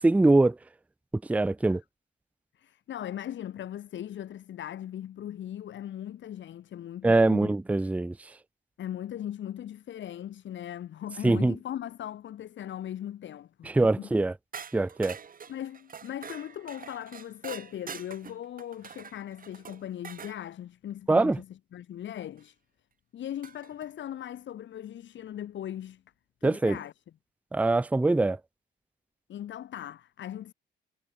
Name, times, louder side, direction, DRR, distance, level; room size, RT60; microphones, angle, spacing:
voice 1, 0.0-0.6 1.3-1.8 7.0-8.3 11.2-11.6 13.6-14.3 14.7-15.2 21.1-21.4 26.4-26.8 27.5-28.4, right 2 dB, 5° right, 0.5 m, -23 dB
voice 2, 2.5-7.5 8.8-14.1 15.5-22.6 23.1-26.0 26.4-26.9 29.3-30.5, left 11 dB, 70° left, 3.1 m, -39 dB
sound 1, 14.5-20.4 22.4-22.5 23.4-23.9, right 6 dB, 45° right, 3.9 m, -45 dB
cardioid pair, 90°, 20 cm